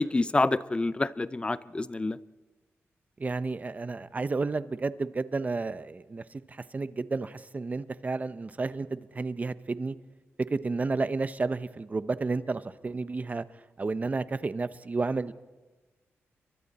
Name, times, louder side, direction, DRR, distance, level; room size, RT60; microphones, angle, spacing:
voice 1, 0.0-2.2, left 2 dB, 20° left, 17 dB, 0.6 m, -27 dB
voice 2, 3.2-9.9 10.5-13.4 13.8-15.3, right 3 dB, 30° right, 14 dB, 0.8 m, -31 dB
30.0 x 23.5 x 4.3 m, 1.2 s
cardioid pair, 90°, 5 cm